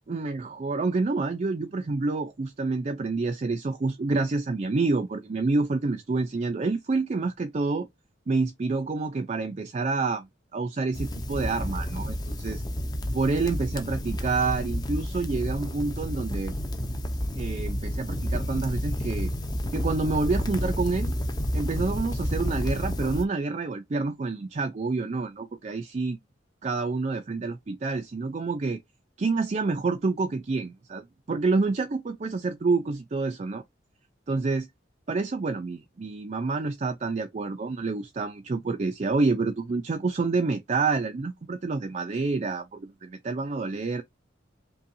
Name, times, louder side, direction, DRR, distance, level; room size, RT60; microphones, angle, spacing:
voice 1, 0.0-7.9 8.3-12.6 13.1-16.5 17.4-19.3 19.7-21.1 21.5-26.2 26.6-28.8 29.2-33.6 34.3-34.7 35.1-42.7 43.2-44.0, right 3 dB, 40° right, 0.4 m, -28 dB
sound 1, 10.9-23.2, equal, 20° left, 0.5 m, -30 dB
5.3 x 2.3 x 2.6 m
head